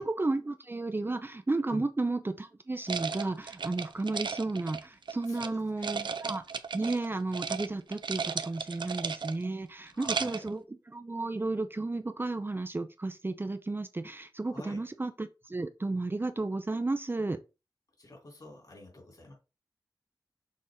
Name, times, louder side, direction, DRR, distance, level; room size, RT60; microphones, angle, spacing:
voice 1, 0.0-6.4 6.7-17.4, right 2 dB, 30° right, 0.5 m, -33 dB
sound 1, 2.9-5.5 5.8-7.1 7.3-7.7 7.9-9.5 9.9-10.5, right 5 dB, 75° right, 0.5 m, -35 dB
voice 2, 5.2-5.9 9.9-10.5 14.5-14.8 18.0-19.3, left 1 dB, 55° left, 3.5 m, -47 dB
6.4 x 4.0 x 3.8 m
wide cardioid pair, 100°, 8 cm